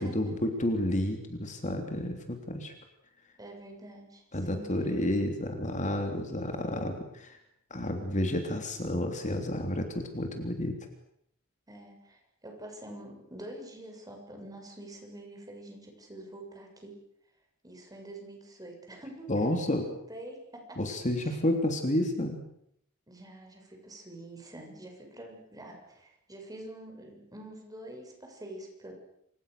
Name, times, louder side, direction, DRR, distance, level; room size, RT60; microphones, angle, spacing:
voice 1, 0.0-2.7 4.3-7.4 7.7-10.8 19.3-19.9 20.8-22.4, left 1 dB, 35° left, 5 dB, 3.2 m, -30 dB
voice 2, 3.4-4.2 4.5-4.9 11.7-16.9 17.6-20.8 21.2-21.4 23.1-28.9, right 1 dB, 15° right, 2 dB, 7.2 m, -46 dB
28.5 x 27.0 x 6.8 m, 0.74 s
head